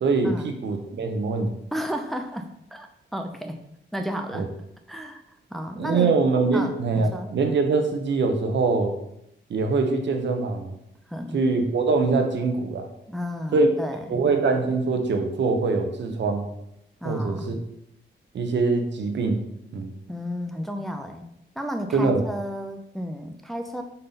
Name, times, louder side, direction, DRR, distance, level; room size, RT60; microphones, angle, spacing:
voice 1, 0.0-1.5 4.3-4.5 5.8-8.9 9.5-10.7 11.3-12.9 13.5-13.7 14.1-16.5 17.0-17.6 18.3-19.4 19.7-19.9 21.9-22.2, right 3 dB, 70° right, 5 dB, 1.0 m, -23 dB
voice 2, 1.7-2.9 3.1-3.6 3.9-4.5 4.9-5.2 5.5-6.2 6.5-7.3 11.1-11.4 13.1-14.3 17.0-17.6 20.1-21.2 21.6-23.8, equal, ahead, 5 dB, 0.6 m, -32 dB
5.5 x 5.4 x 4.1 m, 0.79 s
cardioid pair, 105°, 20 cm